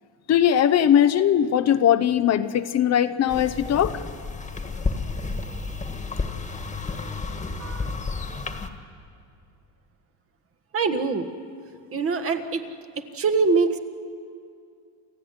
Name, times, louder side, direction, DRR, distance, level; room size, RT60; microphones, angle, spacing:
voice 1, 0.3-4.0, left 10 dB, 45° left, 10 dB, 0.8 m, -20 dB
sound 1, 3.3-8.7, left 4 dB, 20° left, 1.7 m, -31 dB
voice 2, 7.6-7.9 10.7-11.3 11.9-12.7 13.0-13.8, right 4 dB, 35° right, 7 dB, 1.6 m, -24 dB
28.5 x 14.5 x 9.6 m, 2.4 s
cardioid pair, 120°, 37 cm